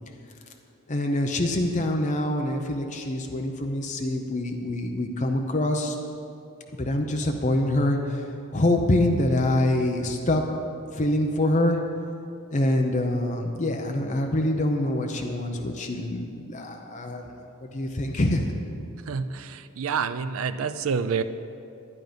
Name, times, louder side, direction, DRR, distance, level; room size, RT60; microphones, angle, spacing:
voice 1, 0.9-6.0 6.8-8.2 8.5-10.4 10.9-11.8 12.5-17.3 17.7-18.4, left 1 dB, 35° left, 3 dB, 0.7 m, -25 dB
voice 2, 19.1-21.2, right 6 dB, 70° right, 11 dB, 0.5 m, -28 dB
12.5 x 9.2 x 5.2 m, 2.7 s
head